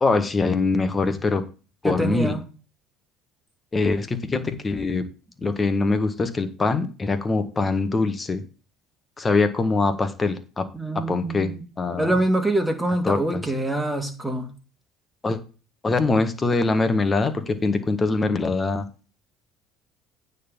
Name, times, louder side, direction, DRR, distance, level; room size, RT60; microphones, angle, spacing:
voice 1, 0.0-1.4 1.8-2.3 3.7-5.0 5.4-8.4 9.2-10.7 11.1-11.5 11.8-12.1 13.0-13.2 15.2-15.4 15.8-18.9, left 3 dB, 25° left, 10 dB, 1.6 m, -23 dB
voice 2, 1.8-2.4 10.7-11.6 12.0-14.5, right 1 dB, 10° right, 4 dB, 2.6 m, -25 dB
9.4 x 4.1 x 7.1 m, 0.34 s
hypercardioid pair, 70°, 0 cm